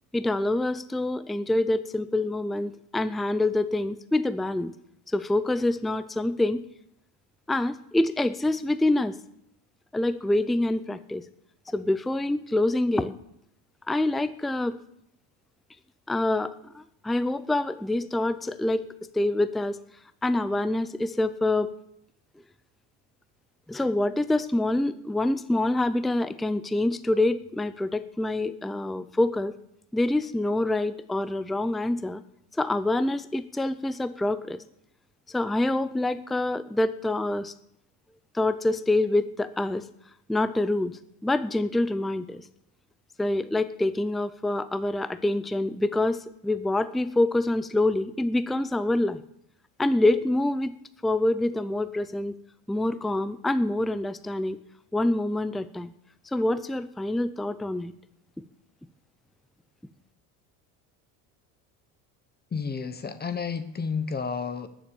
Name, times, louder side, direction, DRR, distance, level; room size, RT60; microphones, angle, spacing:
voice 1, 0.1-4.7 5.1-6.6 7.5-9.1 9.9-11.2 11.7-13.1 13.9-14.8 16.1-18.8 19.1-19.8 20.2-21.7 23.7-29.5 29.9-32.2 32.6-34.6 35.3-37.5 38.3-39.8 40.3-42.4 43.2-49.2 49.8-50.8 51.0-52.3 52.7-54.6 54.9-55.9 56.3-57.9, left 2 dB, ahead, 13 dB, 0.4 m, -26 dB
voice 2, 62.5-64.7, left 5 dB, 25° left, 11 dB, 1.1 m, -31 dB
19.5 x 7.4 x 7.0 m, 0.78 s
supercardioid pair, 110°, 42 cm